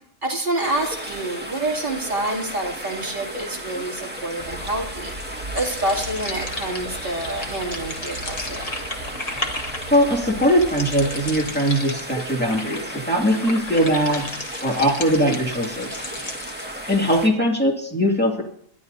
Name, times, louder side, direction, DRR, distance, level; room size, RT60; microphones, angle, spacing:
voice 1, 0.2-8.6 13.8-14.0, right 1 dB, 40° right, -3 dB, 3.1 m, -27 dB
sound 1, 0.6-17.3, right 1 dB, 10° right, 1.8 m, -35 dB
sound 2, 4.4-11.5, right 1 dB, 65° right, 4.5 m, -39 dB
sound 3, 5.5-17.2, left 2 dB, 30° left, 1.5 m, -34 dB
voice 2, 9.9-14.2 14.6-16.0 16.9-18.4, equal, 5° left, -2 dB, 2.4 m, -20 dB
28.0 x 11.0 x 2.7 m, 0.69 s
omnidirectional pair, 1.3 m